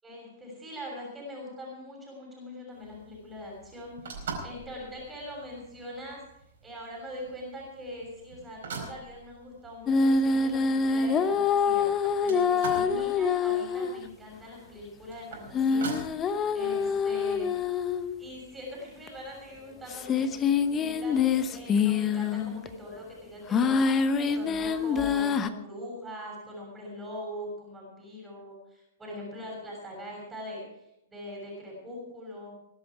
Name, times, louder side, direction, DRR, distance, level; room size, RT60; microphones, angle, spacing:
voice 1, 0.0-6.2 6.6-17.5 18.2-20.5 20.7-23.8 24.2-32.6, left 1 dB, 10° right, -2 dB, 6.5 m, -42 dB
sound 1, 2.7-18.0, right 4 dB, 60° right, 4.6 m, -45 dB
sound 2, 9.9-14.0 15.5-18.2 19.1-19.2 19.9-22.7 23.5-25.5, left 5 dB, 25° left, 1.0 m, -26 dB
21.0 x 11.5 x 4.9 m, 0.83 s
figure-of-eight pair, 105°, 0 cm